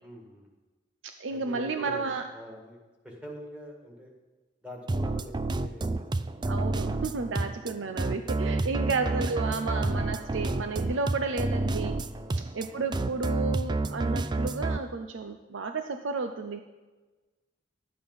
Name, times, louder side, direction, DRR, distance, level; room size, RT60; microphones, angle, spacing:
voice 1, 0.0-0.5 1.3-2.8 3.0-4.1 4.6-6.0 7.1-7.5 12.1-12.4, equal, 5° right, 1 dB, 1.8 m, -45 dB
voice 2, 1.0-2.3 6.5-12.0 12.5-16.6, right 4 dB, 80° right, 7 dB, 0.6 m, -32 dB
sound 1, 4.9-14.8, right 2 dB, 25° right, 0.4 m, -29 dB
11.5 x 8.8 x 5.5 m, 1.2 s
head